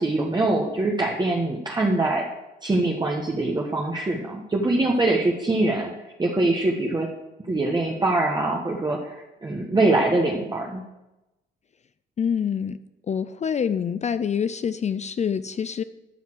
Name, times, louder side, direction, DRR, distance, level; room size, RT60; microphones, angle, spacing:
voice 1, 0.0-2.2 2.6-5.9 6.2-7.1 7.5-10.8, right 2 dB, 20° right, -1 dB, 1.3 m, -23 dB
voice 2, 12.2-12.8 13.1-15.8, left 7 dB, 35° left, 13 dB, 0.4 m, -26 dB
12.5 x 5.7 x 6.2 m, 0.99 s
cardioid pair, 90°, 20 cm